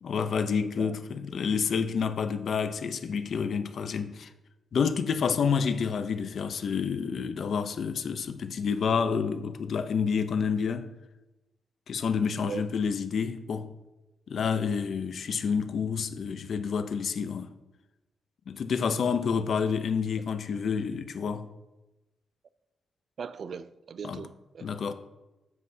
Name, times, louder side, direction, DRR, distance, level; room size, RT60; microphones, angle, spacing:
voice 1, 0.0-4.3 4.7-10.9 11.9-13.7 14.3-17.5 18.5-21.5 24.0-24.2 24.6-24.9, left 6 dB, 55° left, 0.5 m, -29 dB
voice 2, 0.6-1.0 12.4-12.6 23.2-24.7, right 6 dB, 50° right, 0.3 m, -39 dB
9.4 x 7.4 x 2.7 m
wide cardioid pair, 150°, 0 cm